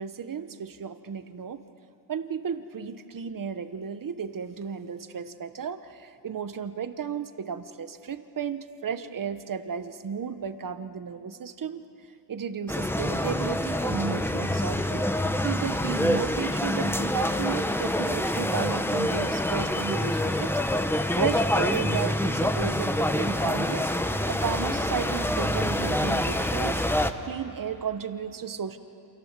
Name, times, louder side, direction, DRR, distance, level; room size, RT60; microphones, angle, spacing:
voice 1, 0.0-1.6 2.1-11.8 12.3-15.1 15.4-20.8 21.2-23.9 24.3-26.8 27.3-28.8, right 7 dB, 50° right, 10 dB, 1.1 m, -33 dB
sound 1, 12.7-27.1, left 1 dB, 5° left, 0.9 m, -26 dB
29.0 x 27.5 x 7.5 m, 2.7 s
wide cardioid pair, 140°, 42 cm